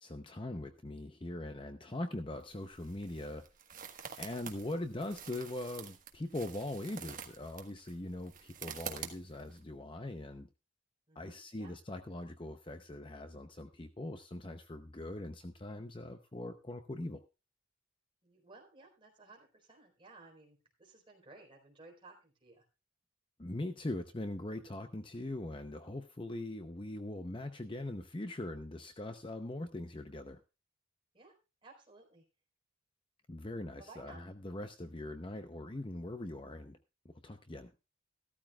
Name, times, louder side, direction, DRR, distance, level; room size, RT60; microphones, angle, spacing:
voice 1, 0.0-3.4 4.2-10.5 11.2-17.2 23.4-30.4 33.3-36.8 37.0-37.7, left 1 dB, 25° left, 8 dB, 0.7 m, -41 dB
sound 1, 2.4-9.6, right 7 dB, 40° right, 1.4 m, -48 dB
voice 2, 11.1-11.7 18.2-22.6 31.1-31.3 31.6-32.2 33.4-34.2, right 3 dB, 25° right, 1 dB, 4.2 m, -57 dB
14.5 x 13.0 x 2.3 m, 0.29 s
head